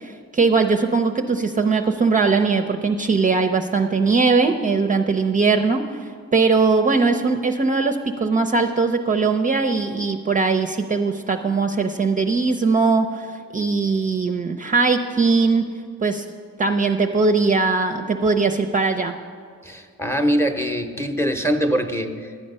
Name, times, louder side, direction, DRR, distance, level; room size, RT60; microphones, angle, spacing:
voice 1, 0.0-15.7 16.0-16.3 16.6-19.1, right 4 dB, 25° right, 5 dB, 0.5 m, -20 dB
voice 2, 19.6-22.4, equal, 10° left, 6 dB, 0.8 m, -23 dB
11.5 x 8.5 x 5.4 m, 2.1 s
cardioid pair, 90°, 30 cm